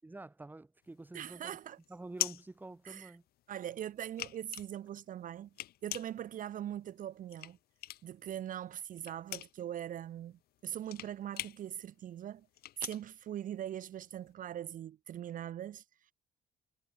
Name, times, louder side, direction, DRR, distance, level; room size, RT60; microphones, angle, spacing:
voice 1, 0.0-1.6 1.9-3.2, right 2 dB, 10° right, 1.4 m, -48 dB
sound 1, 0.9-3.4 3.8-8.3 8.6-14.1, left 14 dB, 65° left, 1.2 m, -42 dB
voice 2, 1.1-1.8 2.8-3.1 3.5-5.5 5.8-7.6 8.0-12.5 12.8-16.1, right 11 dB, 55° right, 0.9 m, -41 dB
cardioid pair, 110°, 17 cm